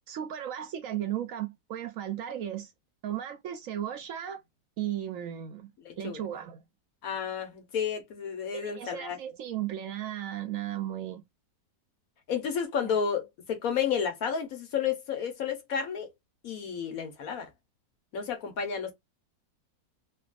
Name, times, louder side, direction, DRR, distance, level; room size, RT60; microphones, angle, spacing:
voice 1, 0.1-2.7 3.0-4.4 4.8-5.7 6.0-6.6 8.5-11.2, right 11 dB, 65° right, 0.9 m, -35 dB
voice 2, 5.8-6.2 7.0-9.2 12.3-16.1 16.4-17.5 18.1-18.9, left 7 dB, 65° left, 1.4 m, -31 dB
3.3 x 2.4 x 2.3 m
omnidirectional pair, 1.6 m